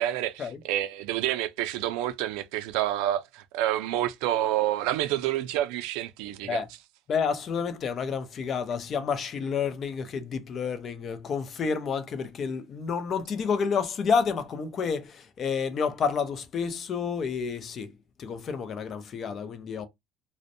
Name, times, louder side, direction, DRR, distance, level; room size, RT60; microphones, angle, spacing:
voice 1, 0.0-6.6, right 13 dB, 85° right, 0.3 m, -28 dB
voice 2, 7.1-17.9 18.2-19.9, left 6 dB, 35° left, 0.4 m, -29 dB
2.5 x 2.0 x 2.5 m
cardioid pair, 160°, 0 cm